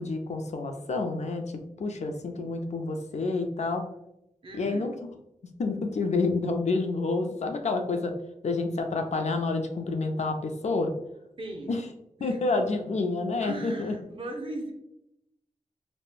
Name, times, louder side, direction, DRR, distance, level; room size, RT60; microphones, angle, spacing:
voice 1, 0.0-1.5 1.8-3.8 4.5-4.9 5.6-8.1 8.4-10.9 11.7-11.8 12.2-13.9, left 3 dB, 55° left, 5 dB, 0.4 m, -28 dB
voice 2, 4.4-4.9 11.4-11.8 12.2-12.4 13.4-14.7, right 2 dB, 40° right, 2 dB, 0.6 m, -38 dB
3.1 x 2.1 x 2.3 m, 0.84 s
wide cardioid pair, 70°, 14 cm